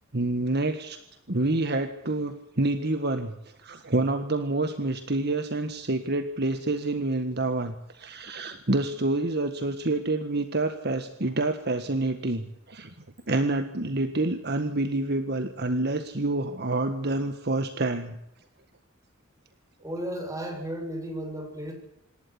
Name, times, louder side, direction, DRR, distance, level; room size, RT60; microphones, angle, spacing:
voice 1, 0.1-1.0 1.3-3.3 3.6-12.9 13.3-18.2, right 2 dB, 55° right, 8 dB, 1.7 m, -27 dB
voice 2, 19.8-21.7, right 1 dB, 15° right, 3 dB, 7.3 m, -34 dB
27.0 x 12.5 x 9.9 m, 0.82 s
head